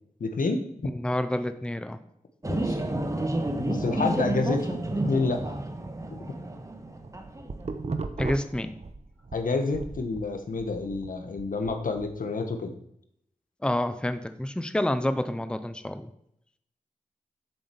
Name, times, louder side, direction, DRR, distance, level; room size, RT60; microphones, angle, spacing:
voice 1, 0.2-0.6 2.5-2.8 3.7-5.5 6.1-6.2 9.3-12.7, left 3 dB, 75° left, 6 dB, 1.5 m, -29 dB
voice 2, 0.9-2.0 8.2-8.8 13.6-16.1, left 1 dB, 5° left, 11 dB, 0.7 m, -28 dB
sound 1, 2.4-7.8, right 1 dB, 20° right, 1.4 m, -30 dB
sound 2, 6.9-9.4 9.7-12.1, right 3 dB, 50° right, 1.1 m, -36 dB
8.0 x 7.6 x 7.0 m, 0.73 s
wide cardioid pair, 70°, 14 cm